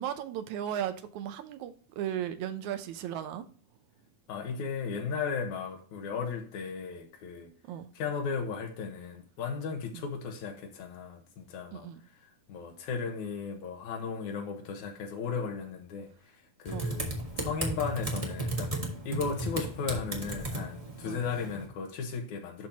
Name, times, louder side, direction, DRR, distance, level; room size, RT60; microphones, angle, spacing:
voice 1, 0.0-3.5 7.7-7.9 9.9-10.1 11.7-12.0 16.7-16.9 21.1-21.2, right 10 dB, 75° right, 2.0 m, -36 dB
voice 2, 4.3-7.5 7.9-11.9 12.2-17.1 17.4-22.7, left 5 dB, 75° left, 2.6 m, -36 dB
Typing, 16.7-21.7, right 1 dB, 50° right, 0.4 m, -35 dB
12.0 x 4.3 x 2.8 m
omnidirectional pair, 3.5 m